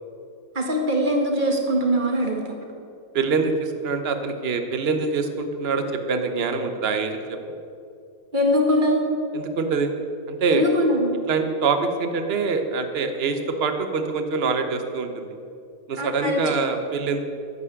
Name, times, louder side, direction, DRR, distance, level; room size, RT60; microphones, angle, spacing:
voice 1, 0.5-2.4 8.3-9.0 10.5-11.1 16.0-16.5, equal, 25° right, 1 dB, 1.9 m, -22 dB
voice 2, 3.1-7.4 9.3-9.9 10.3-10.6 11.3-15.3 15.9-17.2, right 4 dB, 40° right, 6 dB, 1.0 m, -25 dB
11.5 x 10.5 x 8.0 m, 2.5 s
omnidirectional pair, 2.3 m